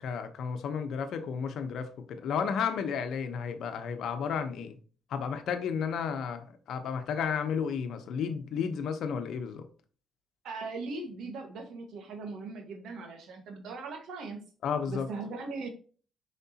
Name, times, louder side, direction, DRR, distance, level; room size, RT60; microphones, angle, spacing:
voice 1, 0.0-4.8 5.1-9.7 14.6-15.1, left 6 dB, 75° left, 1.0 m, -32 dB
voice 2, 10.4-14.4 14.9-15.7, right 3 dB, 75° right, 1.7 m, -39 dB
6.6 x 5.2 x 2.9 m
cardioid pair, 90°, 0 cm